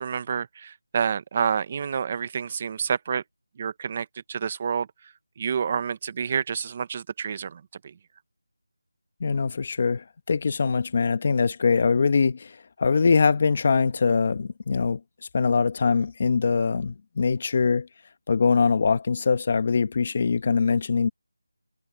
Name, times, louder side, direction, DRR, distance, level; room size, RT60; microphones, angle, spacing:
voice 1, 0.0-3.2 3.6-7.9, right 6 dB, 25° right, 1.0 m, -29 dB
voice 2, 9.2-15.0 15.3-17.9 18.3-21.1, left 5 dB, 30° left, 1.2 m, -23 dB
figure-of-eight pair, 175°, 0 cm